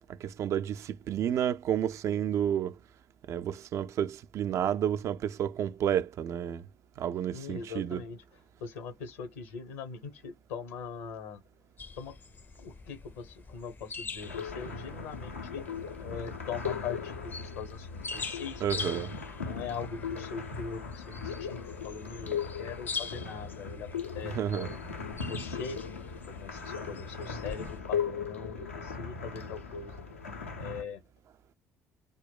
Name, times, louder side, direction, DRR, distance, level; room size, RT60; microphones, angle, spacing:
voice 1, 0.1-2.8 3.3-6.7 7.0-8.0 18.6-19.1 24.2-24.7, right 9 dB, 45° right, 0.3 m, -31 dB
voice 2, 7.3-8.2 8.6-11.4 12.0-12.2 12.6-15.6 16.0-19.0 19.4-24.8 25.3-25.8 26.3-29.9 30.6-31.0, left 6 dB, 70° left, 0.9 m, -41 dB
sound 1, 11.8-27.8, left 4 dB, 30° left, 0.5 m, -44 dB
sound 2, 14.2-30.8, left 5 dB, 85° left, 0.5 m, -38 dB
3.7 x 2.0 x 2.3 m
figure-of-eight pair, 50°, 7 cm